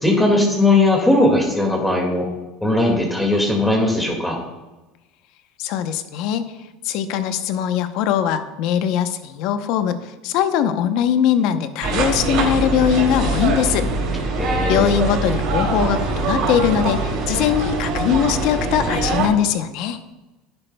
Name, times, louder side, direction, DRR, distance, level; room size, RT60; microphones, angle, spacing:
voice 1, 0.0-2.3 2.6-4.4 14.4-15.0, left 2 dB, 5° left, 0 dB, 1.9 m, -18 dB
voice 2, 5.6-6.4 6.8-13.9 14.3-20.0, left 9 dB, 65° left, 10 dB, 0.8 m, -21 dB
sound 1, 11.8-19.3, right 3 dB, 60° right, 2.7 m, -22 dB
12.0 x 9.8 x 2.2 m, 1.1 s
supercardioid pair, 120°, 0 cm